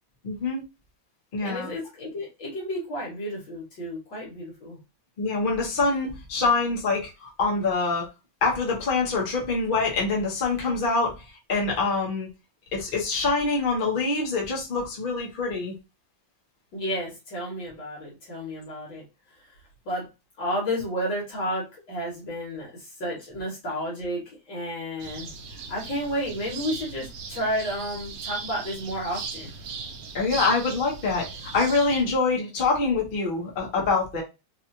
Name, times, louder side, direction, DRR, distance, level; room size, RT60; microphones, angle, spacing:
voice 1, 0.2-0.6 1.3-1.7 5.2-8.1 8.4-11.2 11.5-12.3 12.7-15.7 30.1-31.3 31.5-34.2, left 3 dB, 35° left, -2 dB, 1.0 m, -25 dB
voice 2, 1.4-4.8 16.7-19.0 19.4-19.5 19.9-20.1 20.4-29.5, equal, 70° left, -4 dB, 2.1 m, -32 dB
sound 1, 25.0-32.0, right 5 dB, 65° right, 0.9 m, -38 dB
4.2 x 2.4 x 2.8 m, 0.26 s
omnidirectional pair, 2.2 m